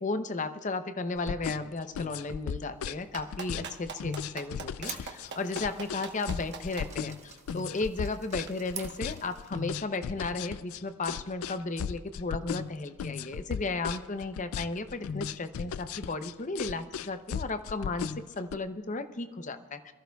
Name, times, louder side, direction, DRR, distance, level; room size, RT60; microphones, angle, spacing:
voice 1, 0.0-19.9, left 3 dB, 35° left, 10 dB, 0.6 m, -34 dB
sound 1, 1.2-18.6, left 7 dB, 75° left, 0.3 m, -36 dB
Clapping, 3.1-6.9 8.4-8.5, right 5 dB, 55° right, 1.1 m, -41 dB
sound 2, 4.5-9.6, right 7 dB, 30° right, 1.0 m, -47 dB
22.5 x 14.0 x 2.3 m, 1.4 s
head